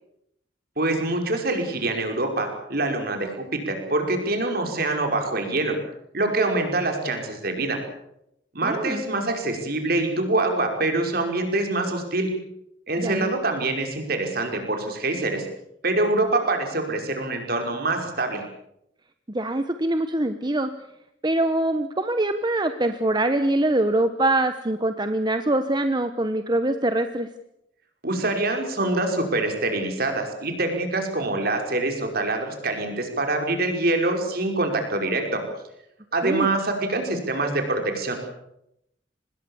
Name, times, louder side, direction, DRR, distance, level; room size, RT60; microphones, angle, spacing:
voice 1, 0.8-5.8 6.1-7.8 8.5-12.3 12.9-15.5 15.8-18.4 28.0-35.4 36.1-38.1, right 2 dB, 55° right, 4 dB, 5.4 m, -25 dB
voice 2, 8.6-9.0 13.0-13.3 19.3-20.7 21.2-27.3 36.2-36.5, right 1 dB, 25° right, 8 dB, 1.0 m, -24 dB
26.0 x 20.5 x 7.2 m, 0.80 s
head